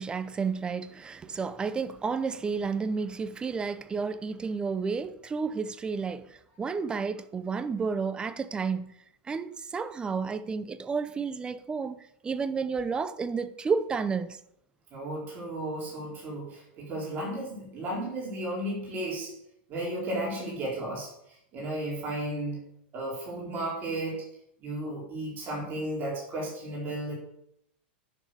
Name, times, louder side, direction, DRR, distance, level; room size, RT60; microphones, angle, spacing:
voice 1, 0.0-8.9 9.3-12.0 12.2-14.4, right 5 dB, 15° right, 0.7 m, -31 dB
voice 2, 14.9-19.3 19.7-22.6 22.9-24.2 24.6-27.1, right 1 dB, 35° right, 4.4 m, -34 dB
9.9 x 6.4 x 6.6 m
hypercardioid pair, 125°, 6 cm